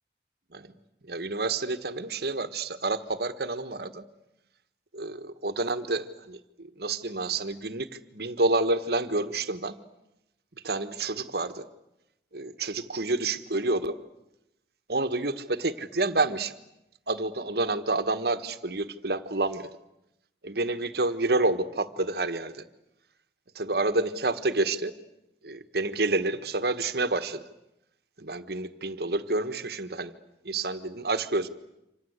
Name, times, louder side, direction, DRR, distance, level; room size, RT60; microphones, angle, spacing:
voice 1, 1.1-4.0 4.9-7.9 8.1-9.8 10.6-11.6 12.3-14.0 14.9-16.5 17.1-19.7 20.4-22.6 23.5-25.0 25.4-27.4 28.2-30.1 30.4-31.5, right 2 dB, 60° right, 10 dB, 1.4 m, -29 dB
28.0 x 26.5 x 8.1 m, 0.89 s
head